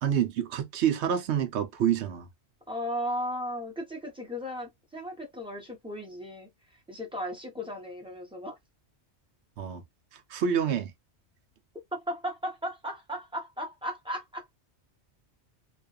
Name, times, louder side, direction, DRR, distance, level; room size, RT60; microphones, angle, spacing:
voice 1, 0.0-2.3 9.6-9.8 10.1-10.9, right 9 dB, 70° right, 0.9 m, -27 dB
voice 2, 2.7-6.5 6.9-8.6 11.9-14.5, equal, 5° right, 0.9 m, -36 dB
2.5 x 2.3 x 2.3 m
omnidirectional pair, 1.2 m